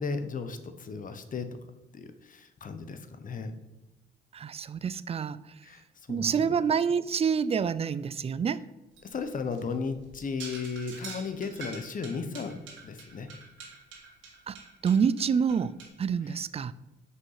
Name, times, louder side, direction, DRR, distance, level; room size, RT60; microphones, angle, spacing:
voice 1, 0.0-1.6 1.9-3.5 5.6-6.6 9.0-13.3, left 5 dB, 40° left, 9 dB, 1.0 m, -35 dB
voice 2, 4.3-5.4 6.1-8.6 14.5-14.6 14.8-16.7, right 6 dB, 30° right, 17 dB, 0.4 m, -27 dB
sound 1, 8.9-15.9, right 4 dB, 80° right, 2.4 m, -46 dB
6.5 x 5.1 x 5.8 m, 1.0 s
cardioid pair, 90°, 20 cm